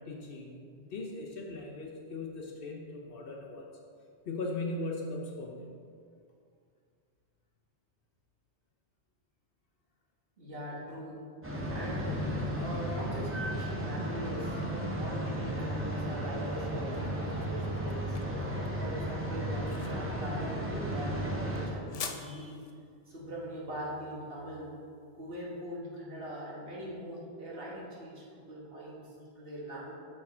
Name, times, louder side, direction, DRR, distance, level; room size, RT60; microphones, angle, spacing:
voice 1, 0.0-3.7 4.2-5.7 18.1-18.2, left 2 dB, 60° left, 0 dB, 0.8 m, -39 dB
voice 2, 10.4-11.3 11.7-12.2 12.5-18.2 18.8-22.6 23.1-24.7 25.1-29.9, equal, 55° right, -5 dB, 1.6 m, -41 dB
sound 1, 11.4-21.7, equal, 15° right, 0.6 m, -34 dB
sound 2, 16.4-25.5, left 6 dB, 75° left, 0.3 m, -48 dB
6.0 x 4.6 x 4.2 m, 2.3 s
omnidirectional pair, 1.2 m